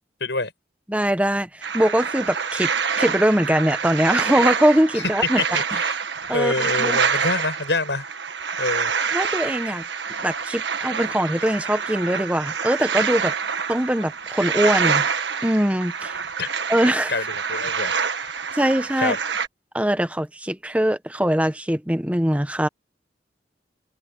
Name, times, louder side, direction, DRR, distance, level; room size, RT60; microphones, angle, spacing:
voice 1, 0.2-0.5 5.4-6.0 6.3-8.1 8.6-8.9 16.4-16.5 17.1-18.4 19.0-19.2, left 3 dB, 75° left, 6.5 m, -26 dB
voice 2, 0.9-2.7 3.0-5.4 6.3-7.0 9.1-9.8 10.2-13.3 13.7-15.1 15.4-16.2 16.7-17.1 18.5-19.1 19.7-22.7, right 1 dB, 5° right, 1.1 m, -22 dB
sound 1, 1.6-19.5, right 6 dB, 75° right, 1.6 m, -26 dB
head